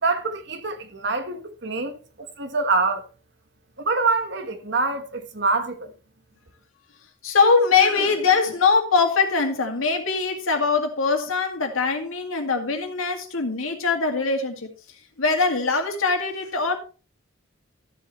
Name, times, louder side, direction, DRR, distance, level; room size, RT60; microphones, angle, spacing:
voice 1, 0.0-2.0 2.4-3.0 3.8-5.9, right 3 dB, 55° right, 1.3 m, -25 dB
voice 2, 7.2-14.7 15.2-16.8, left 4 dB, 75° left, 2.1 m, -22 dB
13.5 x 7.5 x 3.1 m
head